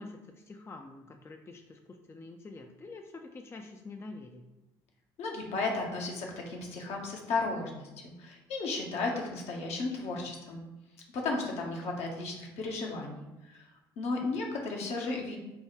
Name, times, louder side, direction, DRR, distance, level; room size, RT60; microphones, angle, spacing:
voice 1, 0.0-4.5 14.1-14.4, left 3 dB, 20° left, 4 dB, 0.4 m, -46 dB
voice 2, 5.2-10.6 11.1-13.7 14.0-15.4, left 3 dB, 60° left, 0 dB, 0.8 m, -34 dB
3.4 x 2.3 x 4.4 m, 1.0 s
hypercardioid pair, 55°, 12 cm